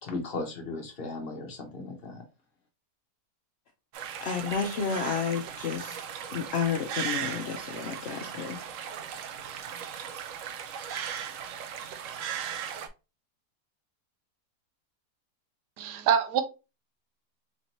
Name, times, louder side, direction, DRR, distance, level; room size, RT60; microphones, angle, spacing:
voice 1, 0.0-2.2, left 3 dB, 45° left, 1.0 m, -36 dB
sound 1, 3.9-12.9, right 8 dB, 70° right, 0.8 m, -37 dB
voice 2, 4.2-8.7, left 6 dB, 65° left, 0.6 m, -31 dB
voice 3, 15.8-16.4, right 8 dB, 90° right, 1.3 m, -25 dB
4.3 x 2.7 x 2.9 m
omnidirectional pair, 1.7 m